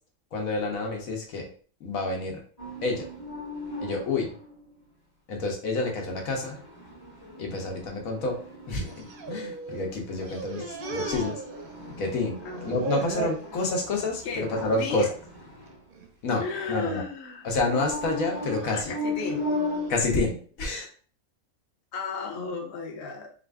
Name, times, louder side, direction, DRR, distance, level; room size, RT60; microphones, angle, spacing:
voice 1, 0.3-1.5 1.8-2.4 2.8-3.1 3.8-4.3 5.3-6.6 7.4-8.4 8.7-10.6 10.9-11.4 12.0-15.1 16.2-16.4 16.7-17.0 17.4-18.9 19.9-20.9, left 2 dB, 75° left, 1 dB, 1.4 m, -28 dB
sound 1, 2.6-4.7 5.8-16.0 17.6-19.9, left 2 dB, 20° left, 1.1 m, -37 dB
sound 2, 8.9-9.9 10.2-12.0 12.3-13.5 14.0-14.3 14.7-14.8 15.7-16.1 16.6-17.0 17.8-20.0, right 5 dB, 55° right, 0.6 m, -38 dB
voice 2, 10.3-10.7 12.4-12.7 14.2-14.5 14.8-15.1 16.4-17.5 18.7-19.5 21.9-23.3, left 4 dB, 55° left, 1 dB, 1.0 m, -34 dB
4.3 x 2.6 x 3.4 m, 0.43 s
omnidirectional pair, 1.5 m